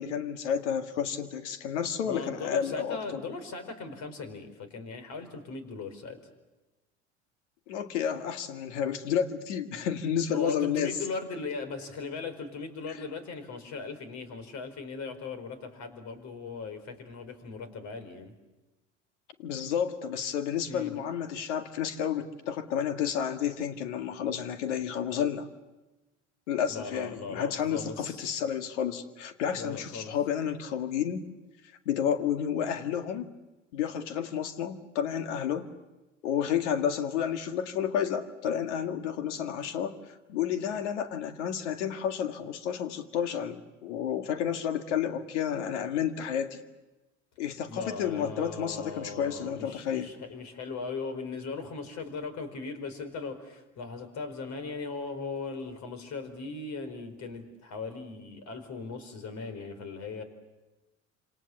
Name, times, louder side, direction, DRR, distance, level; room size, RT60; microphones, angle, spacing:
voice 1, 0.0-3.2 7.7-10.9 19.4-25.5 26.5-31.3 31.9-33.3 33.7-35.7 36.2-40.0 40.3-46.6 47.4-50.1, left 8 dB, 75° left, 8 dB, 2.1 m, -31 dB
voice 2, 2.0-6.2 10.3-18.3 20.7-21.0 26.7-28.2 29.5-30.2 47.7-60.2, left 4 dB, 50° left, 10 dB, 4.8 m, -38 dB
27.5 x 27.0 x 7.2 m, 1.1 s
hypercardioid pair, 75°, 36 cm